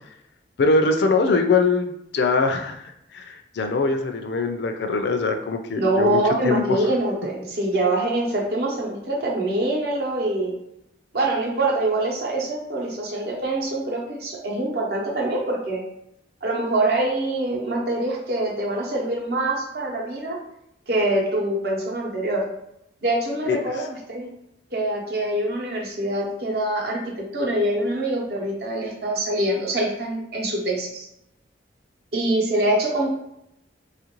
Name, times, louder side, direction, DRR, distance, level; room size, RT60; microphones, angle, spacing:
voice 1, 0.6-6.8 23.5-23.6, left 3 dB, 65° left, 6 dB, 0.4 m, -22 dB
voice 2, 5.8-10.5 11.1-15.8 16.4-20.4 20.9-22.5 23.0-24.3 24.7-31.1 32.1-33.1, right 1 dB, 60° right, -1 dB, 0.8 m, -24 dB
3.2 x 2.5 x 2.9 m, 0.79 s
head